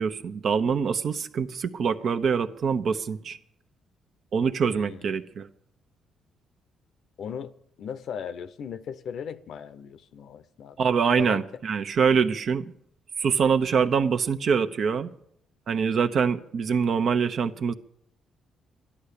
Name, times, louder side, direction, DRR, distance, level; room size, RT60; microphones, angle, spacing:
voice 1, 0.0-3.4 4.3-5.5 10.8-12.7 13.2-15.1 15.7-17.7, right 6 dB, 60° right, 9 dB, 1.0 m, -24 dB
voice 2, 4.7-5.2 7.2-7.5 7.8-10.8 11.2-11.4, left 7 dB, 70° left, 14 dB, 0.8 m, -37 dB
13.5 x 11.0 x 8.5 m, 0.69 s
cardioid pair, 90°, 0 cm